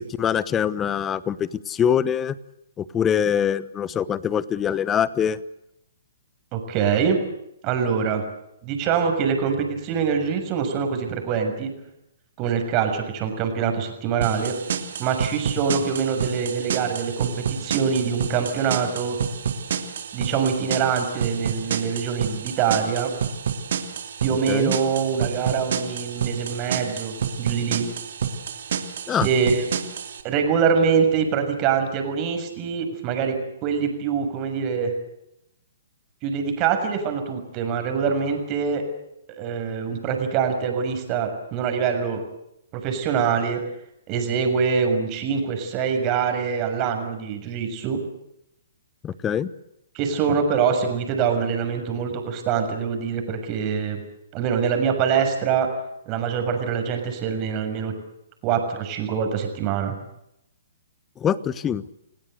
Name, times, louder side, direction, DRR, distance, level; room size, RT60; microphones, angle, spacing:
voice 1, 0.0-2.4 2.8-5.4 24.3-24.7 29.1-29.3 49.0-49.5 61.2-61.9, left 8 dB, 20° left, 17 dB, 1.1 m, -24 dB
voice 2, 6.5-7.2 7.6-8.2 8.6-11.7 12.4-14.5 15.0-17.3 17.6-19.2 20.1-23.1 24.2-27.8 29.2-29.6 30.2-33.3 33.6-34.9 36.2-38.8 39.4-42.2 42.7-43.6 44.1-48.0 49.9-54.0 54.3-55.7 56.1-57.9 58.4-59.9, right 6 dB, 30° right, 5 dB, 6.6 m, -24 dB
sound 1, 14.2-30.2, right 7 dB, 60° right, 3.0 m, -29 dB
29.0 x 17.5 x 8.1 m, 0.81 s
hypercardioid pair, 130°, 0 cm